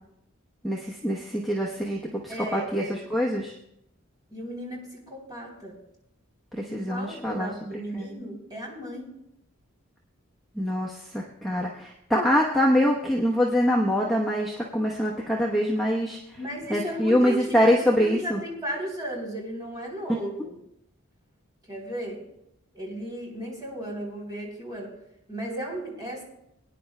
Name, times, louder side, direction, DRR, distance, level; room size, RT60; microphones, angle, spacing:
voice 1, 0.6-3.5 6.5-7.5 7.9-8.2 10.6-16.2 16.7-18.4 20.1-20.2, equal, ahead, -4 dB, 0.9 m, -24 dB
voice 2, 2.3-3.0 4.3-5.8 6.7-9.1 16.3-20.6 21.7-22.2 22.7-24.9 25.3-26.2, right 1 dB, 20° right, -3 dB, 3.3 m, -35 dB
22.5 x 10.0 x 2.2 m, 0.80 s
head